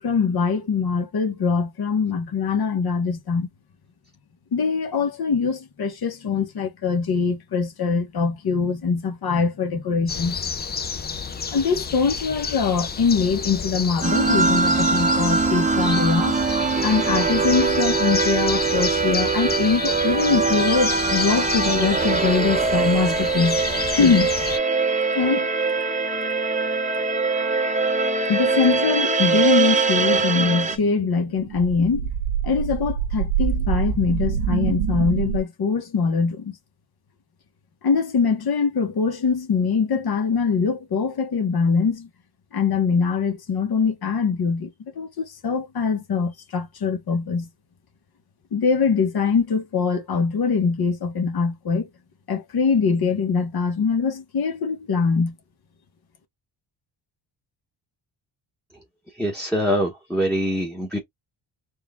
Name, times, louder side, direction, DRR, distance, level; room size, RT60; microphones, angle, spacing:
voice 1, 0.0-3.5 4.5-10.4 11.5-16.4 16.8-23.6 24.0-24.3 25.1-25.5 28.3-32.1 32.4-36.5 37.8-42.1 42.5-47.5 48.5-51.9 52.3-55.3, left 5 dB, 50° left, 1.2 m, -23 dB
sound 1, 10.1-24.6, left 6 dB, 25° left, 0.4 m, -30 dB
sound 2, 14.0-30.8, right 4 dB, 15° right, 0.7 m, -22 dB
sound 3, 29.9-35.4, right 9 dB, 85° right, 1.0 m, -26 dB
voice 2, 59.2-61.0, equal, ahead, 1.0 m, -24 dB
4.5 x 2.4 x 3.5 m
cardioid pair, 120°, 47 cm